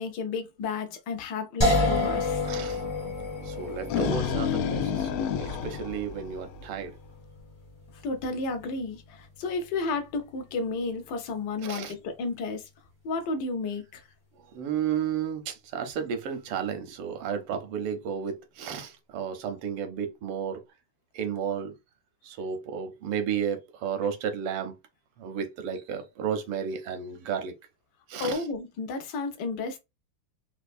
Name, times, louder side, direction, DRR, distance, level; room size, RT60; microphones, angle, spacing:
voice 1, 0.0-2.5 8.0-12.7 13.0-14.0 28.2-29.8, left 3 dB, 60° left, 1.2 m, -32 dB
sound 1, 1.6-14.7, left 2 dB, 35° left, 0.4 m, -33 dB
voice 2, 2.5-2.8 3.4-6.9 11.6-11.9 14.5-20.6 21.1-21.8 22.2-24.8 25.2-27.5 28.1-28.4, right 7 dB, 85° right, 1.7 m, -32 dB
sound 2, 3.6-6.8, left 7 dB, 80° left, 1.4 m, -29 dB
4.5 x 2.3 x 2.5 m
omnidirectional pair, 2.4 m